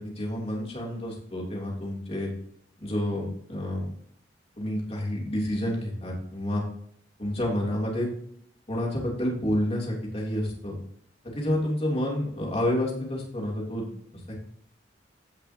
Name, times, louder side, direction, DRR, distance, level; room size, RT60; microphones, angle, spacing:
voice 1, 0.0-2.3 2.8-3.9 4.6-6.6 7.2-8.1 8.7-10.7 11.2-13.9 14.1-14.3, left 1 dB, 35° left, -2 dB, 3.2 m, -29 dB
15.5 x 5.8 x 2.9 m, 0.67 s
head